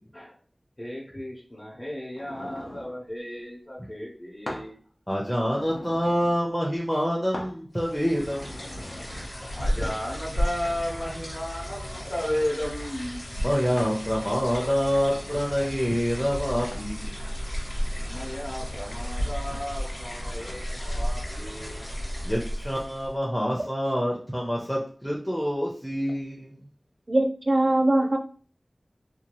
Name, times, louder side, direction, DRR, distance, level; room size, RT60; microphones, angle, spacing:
voice 1, 0.8-4.8 9.5-13.2 18.1-21.9, left 1 dB, 35° left, -5 dB, 0.8 m, -34 dB
sound 1, 2.1-3.0 4.5-4.7 5.1-6.4 7.3-7.6 8.1-9.3 10.7-10.8 11.4-12.3 13.8-14.0 14.6-15.6 16.7-16.9 17.6-18.4 19.5-19.7 20.1-20.6, left 1 dB, 70° left, 0.7 m, -43 dB
voice 2, 5.1-8.6 13.4-17.2 22.2-26.6, equal, 5° left, -4 dB, 0.6 m, -27 dB
sound 2, 7.8-23.2, equal, 90° left, 1.3 m, -33 dB
voice 3, 27.1-28.2, right 1 dB, 50° right, 5 dB, 0.4 m, -21 dB
2.7 x 2.3 x 3.0 m, 0.42 s
wide cardioid pair, 60°, 0 cm